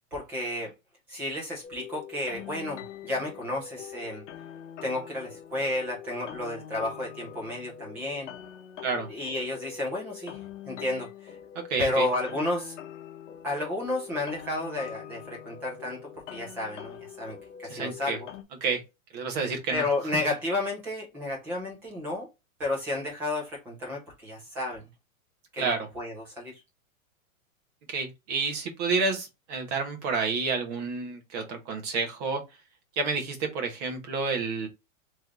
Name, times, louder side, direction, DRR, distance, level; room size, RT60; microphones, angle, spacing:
voice 1, 0.1-0.7 1.1-4.2 4.8-8.3 9.1-11.3 11.8-12.8 13.4-18.3 19.7-22.3 22.6-24.8 25.5-26.6, left 2 dB, 5° right, 0.4 m, -32 dB
sound 1, 1.6-18.4, left 9 dB, 60° left, 0.9 m, -44 dB
voice 2, 11.5-12.1 17.7-18.2 18.6-18.8 19.1-19.8 25.6-25.9 27.9-32.4 33.0-34.7, right 4 dB, 30° right, 1.1 m, -29 dB
3.5 x 3.2 x 3.6 m
supercardioid pair, 170°, 42 cm